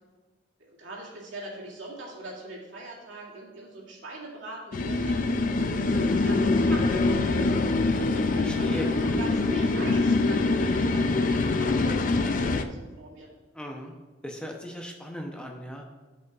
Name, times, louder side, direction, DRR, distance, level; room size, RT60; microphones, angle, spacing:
voice 1, 0.6-7.5 8.0-13.3, right 1 dB, 80° right, -4 dB, 2.3 m, -41 dB
sound 1, 4.7-12.6, left 3 dB, 45° left, 0.4 m, -24 dB
voice 2, 8.4-9.2 13.5-13.9 14.2-15.8, equal, 5° left, 1 dB, 0.7 m, -37 dB
13.5 x 5.3 x 2.4 m, 1.3 s
head